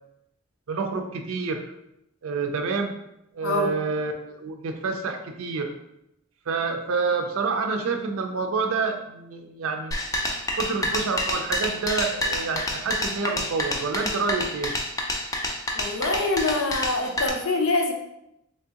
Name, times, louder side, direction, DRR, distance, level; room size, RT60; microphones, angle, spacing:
voice 1, 0.7-1.6 2.2-2.9 3.3-5.7 6.5-10.0 10.6-14.7, right 4 dB, 80° right, 5 dB, 0.4 m, -28 dB
voice 2, 3.4-3.8 15.7-17.9, left 2 dB, 80° left, 3 dB, 0.6 m, -25 dB
sound 1, 9.9-17.3, left 1 dB, 15° left, 0.4 m, -28 dB
3.5 x 2.9 x 2.8 m, 0.83 s
head